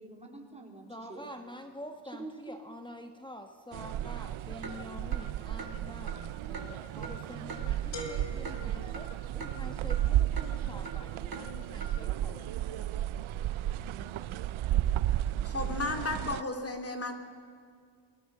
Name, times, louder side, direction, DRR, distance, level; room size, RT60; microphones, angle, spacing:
voice 1, 0.0-1.3 2.1-2.6 13.9-14.2, right 3 dB, 15° right, 1 dB, 4.1 m, -46 dB
voice 2, 0.9-6.2 6.5-12.9, left 1 dB, 10° left, 5 dB, 1.3 m, -47 dB
sound 1, 3.7-16.4, right 12 dB, 75° right, 0.8 m, -33 dB
Clock, 4.6-4.8 5.1-5.2 5.6-5.7 6.1-6.2 6.5-6.7 7.0-7.1 7.5-7.6 8.0-8.1 8.5-8.6 8.9-9.1 9.4-9.5 9.9-10.0 10.4-10.5 10.9-11.0 11.3-11.4 11.8-11.9, right 3 dB, 45° right, 2.7 m, -42 dB
sound 2, 7.9-9.8, left 2 dB, 60° left, 4.5 m, -44 dB
voice 3, 15.4-17.1, left 3 dB, 30° left, 5 dB, 3.2 m, -33 dB
29.5 x 19.5 x 7.5 m, 2.1 s
cardioid pair, 120°, 49 cm